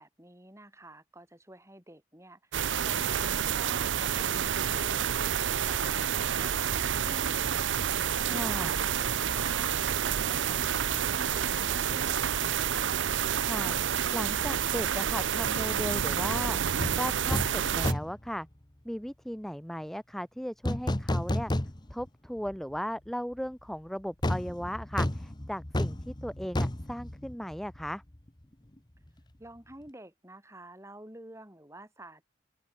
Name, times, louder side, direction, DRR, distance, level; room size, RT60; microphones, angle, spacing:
voice 1, 0.0-7.7 8.2-12.5 29.4-32.3, right 1 dB, 15° right, 7.8 m, -50 dB
sound 1, 2.5-17.9, right 8 dB, 85° right, 0.6 m, -29 dB
voice 2, 8.3-8.8 13.4-13.8 14.1-16.6 17.0-18.5 18.8-21.5 21.9-28.0, equal, ahead, 0.9 m, -36 dB
sound 2, 16.8-17.0 17.3-17.6 17.8-18.3 20.7-22.1 22.5-22.6 24.2-27.9 28.1-28.3, left 1 dB, 25° left, 1.2 m, -31 dB
open air
head